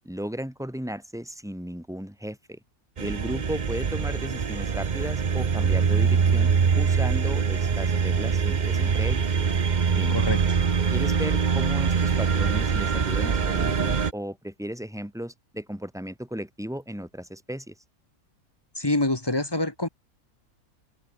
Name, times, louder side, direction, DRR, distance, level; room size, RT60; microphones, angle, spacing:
voice 1, 0.1-2.6 3.0-9.3 9.9-10.2 10.9-17.7, equal, ahead, 4.8 m, -35 dB
sound 1, 3.0-14.1, right 6 dB, 35° right, 0.9 m, -23 dB
voice 2, 10.1-10.4 18.7-19.9, left 2 dB, 15° left, 1.2 m, -26 dB
omnidirectional pair, 1.6 m